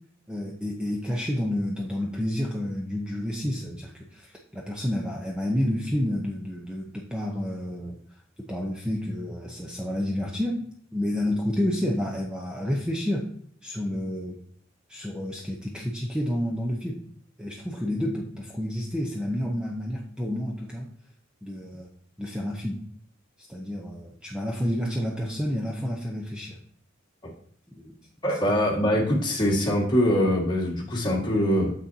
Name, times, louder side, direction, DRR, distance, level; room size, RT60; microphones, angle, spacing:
voice 1, 0.3-8.0 8.5-13.3 13.6-14.4 14.9-17.0 17.4-20.9 21.4-21.9 22.2-22.8 23.5-26.6 27.8-28.0, left 1 dB, 5° right, -1 dB, 0.7 m, -30 dB
voice 2, 28.2-31.7, equal, 25° left, -3 dB, 1.9 m, -23 dB
7.3 x 6.3 x 2.8 m, 0.63 s
head